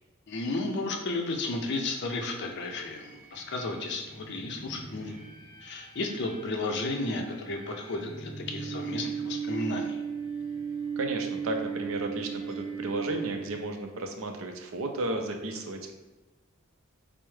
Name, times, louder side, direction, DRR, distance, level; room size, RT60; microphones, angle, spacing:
voice 1, 0.3-5.2 5.6-10.0, left 2 dB, 55° left, 3 dB, 0.5 m, -33 dB
sound 1, 2.7-13.8, right 6 dB, 5° right, 0.7 m, -37 dB
voice 2, 11.0-15.9, right 2 dB, 65° right, 4 dB, 0.5 m, -33 dB
4.4 x 2.0 x 3.2 m, 1.1 s
head